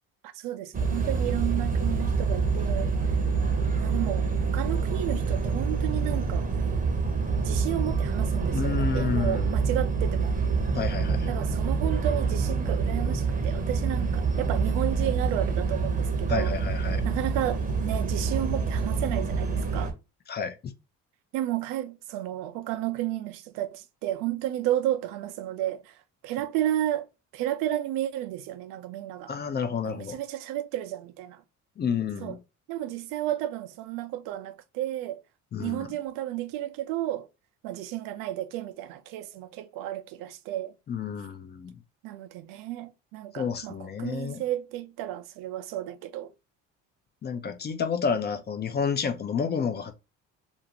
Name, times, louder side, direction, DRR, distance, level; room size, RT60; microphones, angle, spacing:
voice 1, 0.2-3.2 3.8-6.5 7.4-10.3 11.3-16.5 17.0-19.9 21.3-26.0 26.2-27.1 27.3-29.3 29.8-31.4 32.2-32.3 32.7-35.2 35.6-37.3 37.6-40.7 42.0-46.3, right 13 dB, 80° right, 0.5 m, -32 dB
sound 1, 0.7-19.9, right 4 dB, 25° right, 0.7 m, -26 dB
voice 2, 8.5-9.5 10.7-11.3 16.3-17.1 20.3-20.6 29.3-30.2 31.8-32.4 35.5-35.9 40.9-41.7 43.4-44.4 47.2-49.9, left 6 dB, 30° left, 0.5 m, -30 dB
2.5 x 2.5 x 2.8 m
cardioid pair, 95°, 32 cm